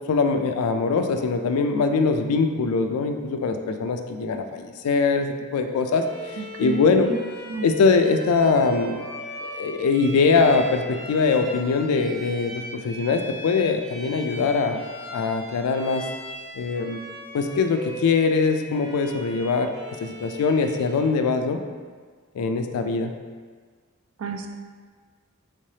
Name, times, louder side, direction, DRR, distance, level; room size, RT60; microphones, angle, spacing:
voice 1, 0.1-7.1 7.6-9.0 9.4-14.8 15.1-16.1 16.6-17.0 17.3-19.7 20.0-21.6 22.4-23.1, left 4 dB, 85° left, 7 dB, 0.3 m, -22 dB
Bowed string instrument, 6.0-21.2, right 1 dB, 25° right, 0.8 m, -39 dB
voice 2, 6.4-7.2 7.5-7.7 24.2-24.5, right 3 dB, 70° right, 4 dB, 0.4 m, -30 dB
3.6 x 3.2 x 2.7 m, 1.5 s
head